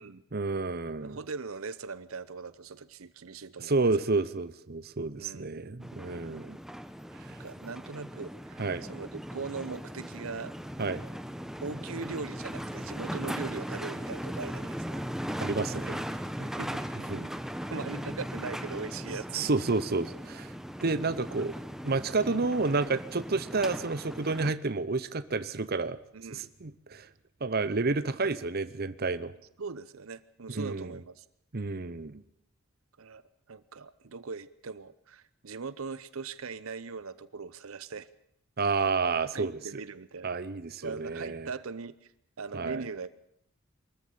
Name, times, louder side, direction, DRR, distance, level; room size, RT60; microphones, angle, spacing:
voice 1, 0.3-1.2 3.6-6.6 7.1-7.4 8.6-8.9 10.8-11.0 15.4-16.0 17.1-17.3 19.3-20.5 20.8-21.6 21.8-26.0 26.3-27.1 27.4-29.3 30.5-30.9 31.5-32.2 38.6-39.6 40.2-41.5 42.5-42.9, right 3 dB, 45° right, 14 dB, 0.8 m, -30 dB
voice 2, 1.0-3.8 5.2-5.6 7.4-8.6 8.9-10.5 11.6-15.1 16.4-16.8 17.7-19.4 26.1-26.4 29.6-31.2 33.0-33.2 33.5-38.1 39.3-40.3 40.8-42.1 42.4-43.1, right 4 dB, 75° right, 15 dB, 0.8 m, -40 dB
sound 1, 5.8-24.5, equal, ahead, 0.9 m, -38 dB
23.5 x 14.0 x 8.6 m, 0.73 s
head